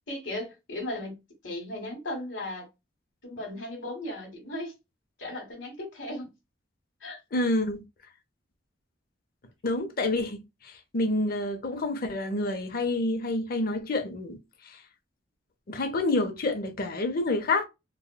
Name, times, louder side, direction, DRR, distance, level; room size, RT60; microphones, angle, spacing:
voice 1, 0.1-1.2 1.4-2.7 3.2-4.7 5.2-6.3 7.0-7.2, left 1 dB, 80° left, 1.3 m, -36 dB
voice 2, 7.3-7.8 9.6-14.4 14.7-14.8 15.7-17.6, left 2 dB, 55° left, 0.6 m, -28 dB
3.4 x 2.2 x 2.2 m
head